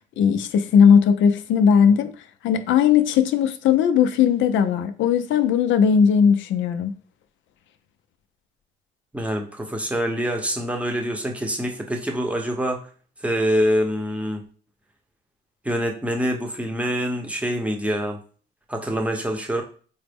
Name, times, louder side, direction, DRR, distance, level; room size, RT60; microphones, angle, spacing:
voice 1, 0.2-2.1 2.4-6.9, left 7 dB, 75° left, 0.4 m, -18 dB
voice 2, 9.1-12.8 13.2-14.4 15.6-18.2 18.7-19.6, equal, 5° right, 0.7 m, -25 dB
3.8 x 2.0 x 3.4 m
cardioid pair, 90°, 20 cm